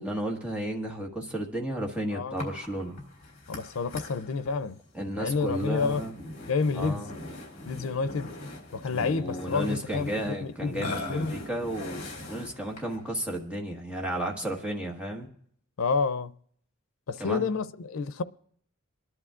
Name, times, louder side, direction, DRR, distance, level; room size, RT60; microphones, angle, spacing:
voice 1, 0.0-3.0 4.9-6.2 6.7-7.1 8.9-15.3 17.2-17.5, right 1 dB, 5° right, 1.5 m, -33 dB
Burping eructation, 2.4-13.1, left 2 dB, 40° left, 3.5 m, -41 dB
voice 2, 3.5-4.8 5.2-6.1 6.5-7.1 7.7-8.4 8.7-10.1 10.4-11.4 15.8-16.3 17.1-18.2, left 4 dB, 85° left, 0.5 m, -29 dB
27.5 x 11.0 x 2.5 m
head